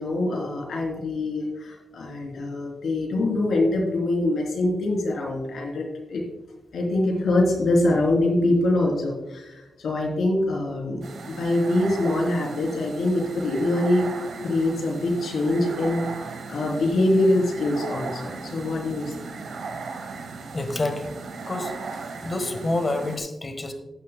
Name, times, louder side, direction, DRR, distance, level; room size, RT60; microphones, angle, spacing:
voice 1, 0.0-6.2 6.7-14.1 14.4-19.1, left 2 dB, 80° left, 0 dB, 3.3 m, -24 dB
sound 1, 11.0-23.2, right 4 dB, 75° right, 1.4 m, -37 dB
voice 2, 20.5-21.1 21.4-21.7 22.2-23.7, left 2 dB, 30° left, 7 dB, 1.3 m, -27 dB
14.0 x 10.5 x 2.2 m, 1.0 s
wide cardioid pair, 135°, 0 cm